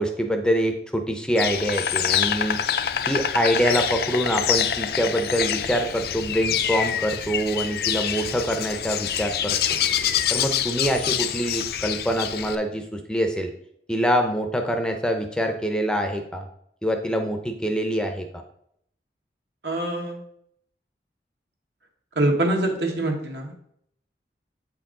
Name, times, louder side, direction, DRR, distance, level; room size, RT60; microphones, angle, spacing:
voice 1, 0.0-2.6 3.1-9.6 10.3-13.5 13.9-16.5 16.8-18.3, equal, 5° left, 4 dB, 0.5 m, -25 dB
Insect, 1.4-12.6, left 9 dB, 60° left, 0.4 m, -26 dB
voice 2, 19.6-20.2 22.1-23.5, right 1 dB, 75° right, 2 dB, 1.3 m, -24 dB
8.3 x 4.6 x 3.7 m, 0.70 s
head